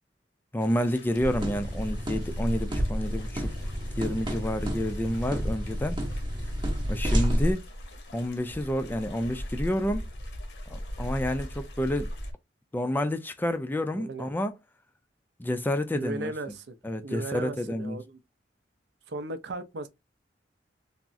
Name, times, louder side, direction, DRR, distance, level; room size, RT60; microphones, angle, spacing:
voice 1, 0.5-3.5 4.0-6.0 6.9-7.7 8.1-10.0 10.7-12.1 12.7-14.5 15.4-16.3 16.8-18.0, left 1 dB, 10° left, 0.3 m, -29 dB
sound 1, 0.6-12.3, equal, 70° left, 0.8 m, -40 dB
sound 2, 1.2-7.5, equal, 25° right, 0.7 m, -30 dB
voice 2, 13.9-14.3 15.9-16.8 17.0-18.2 19.1-19.9, right 2 dB, 65° right, 0.5 m, -36 dB
3.5 x 2.0 x 2.5 m
head